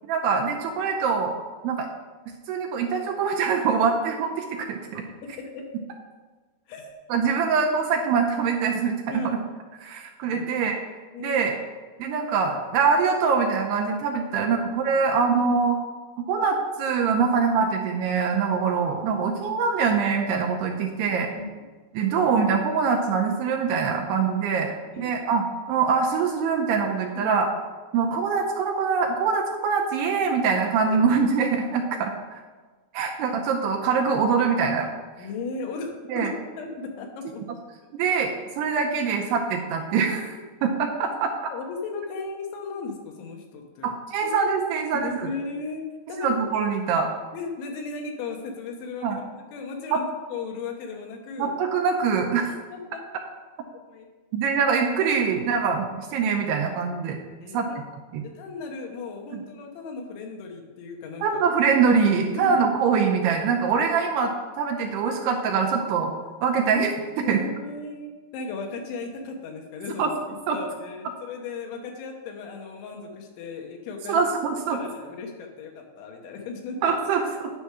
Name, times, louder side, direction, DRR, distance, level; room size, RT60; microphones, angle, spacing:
voice 1, 0.1-1.4 1.6-1.9 2.5-5.0 7.1-9.4 9.8-10.8 11.2-11.5 12.0-15.8 16.3-21.3 21.9-27.5 27.9-32.4 32.9-34.9 36.1-36.3 37.9-40.3 40.6-41.5 43.8-45.3 46.2-47.1 49.0-49.2 49.9-50.0 51.4-52.5 54.3-57.2 57.5-57.7 58.1-58.3 59.3-59.4 61.2-66.1 66.4-67.4 70.0-70.1 70.5-70.6 74.1-74.8 76.8-77.5, right 5 dB, 80° right, 2 dB, 2.5 m, -24 dB
voice 2, 5.2-5.6 6.7-7.0 9.1-9.4 10.3-10.7 11.1-11.4 14.4-14.5 21.4-21.7 24.2-24.3 24.9-25.1 27.2-27.4 35.2-37.4 41.5-44.0 44.2-44.3 44.9-46.5 47.3-49.2 49.5-51.6 52.5-53.0 53.6-54.1 57.4-57.8 58.2-61.4 62.4-62.6 67.2-70.1 70.5-74.2 74.7-76.8, left 4 dB, 90° left, 2 dB, 3.6 m, -36 dB
10.0 x 5.6 x 4.8 m, 1.3 s
omnidirectional pair, 5.2 m